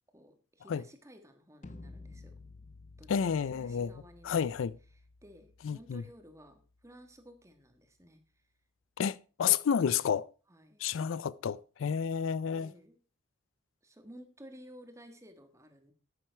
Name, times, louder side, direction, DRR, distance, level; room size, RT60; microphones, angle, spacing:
voice 1, 0.1-2.3 3.0-8.4 10.5-10.8 12.5-13.0 13.8-15.9, equal, 15° right, 1.4 m, -55 dB
sound 1, 1.6-7.6, left 3 dB, 35° left, 0.6 m, -54 dB
voice 2, 3.1-3.9 4.3-4.7 5.6-6.0 9.0-10.3 10.8-12.7, left 7 dB, 80° left, 0.4 m, -30 dB
9.2 x 9.2 x 4.5 m
head